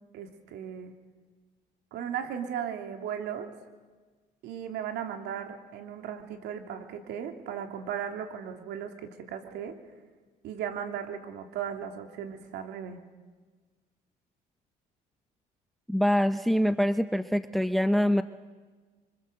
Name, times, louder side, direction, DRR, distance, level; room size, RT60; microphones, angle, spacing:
voice 1, 0.1-0.9 1.9-3.5 4.4-9.7 10.4-13.0, right 8 dB, 80° right, 5 dB, 2.9 m, -36 dB
voice 2, 15.9-18.2, equal, ahead, 11 dB, 0.9 m, -24 dB
27.5 x 25.5 x 7.9 m, 1.4 s
cardioid pair, 110°, 17 cm